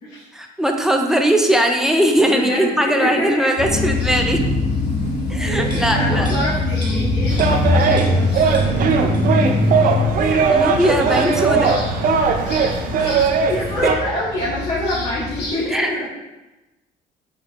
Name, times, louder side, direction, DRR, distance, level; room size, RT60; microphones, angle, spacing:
voice 1, 0.3-4.4 5.3-6.3 10.2-11.7 15.7-15.9, equal, 5° right, 3 dB, 0.4 m, -19 dB
voice 2, 2.2-3.5 3.8-3.9 5.4-9.8 13.0-13.1 13.5-16.1, left 1 dB, 50° left, -11 dB, 1.5 m, -27 dB
sound 1, 3.6-15.5, left 2 dB, 80° left, 1.5 m, -22 dB
sound 2, 5.7-8.3 8.5-9.5 9.8-10.0, right 2 dB, 25° right, 0.9 m, -40 dB
sound 3, 7.3-14.0, right 5 dB, 55° right, 0.5 m, -19 dB
4.4 x 3.7 x 3.0 m, 1.1 s
cardioid pair, 110°, 17 cm